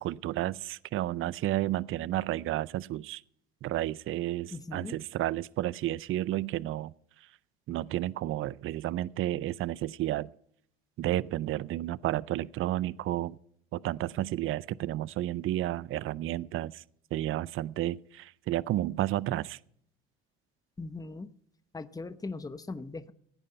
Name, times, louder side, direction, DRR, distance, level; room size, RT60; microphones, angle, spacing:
voice 1, 0.0-3.2 3.6-6.9 7.7-10.3 11.0-13.4 13.7-16.8 17.1-19.6, right 14 dB, 45° right, 0.5 m, -31 dB
voice 2, 4.5-5.0 20.8-21.3 21.7-23.1, left 3 dB, 10° left, 0.9 m, -39 dB
16.0 x 9.3 x 5.7 m
supercardioid pair, 85°, 30 cm